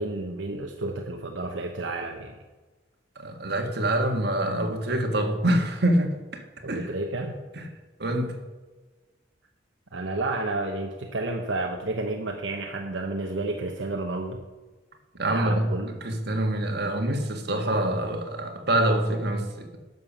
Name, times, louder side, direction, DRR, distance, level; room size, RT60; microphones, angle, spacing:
voice 1, 0.0-2.4 6.6-7.4 9.9-14.4 15.3-15.9 16.8-16.9, right 2 dB, 80° right, 1.0 m, -31 dB
voice 2, 3.2-6.9 7.6-7.7 8.0-8.4 15.2-15.7 16.0-19.7, right 1 dB, 60° right, 1.6 m, -25 dB
11.0 x 6.8 x 7.1 m
head